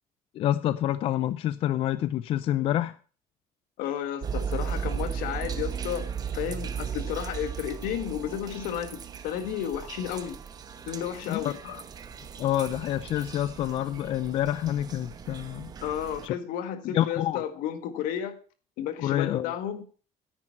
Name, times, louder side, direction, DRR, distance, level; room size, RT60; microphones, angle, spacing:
voice 1, 0.3-3.0 11.3-11.5 12.4-15.7 16.2-16.3 16.8-17.4 19.0-19.5, left 12 dB, 45° left, 14 dB, 0.5 m, -27 dB
voice 2, 3.8-10.4 10.9-11.8 15.8-18.4 18.8-19.8, left 10 dB, 80° left, 9 dB, 1.8 m, -33 dB
sound 1, 4.2-16.3, right 7 dB, 30° right, 0.9 m, -36 dB
9.9 x 9.2 x 4.3 m, 0.38 s
cardioid pair, 180°, 14 cm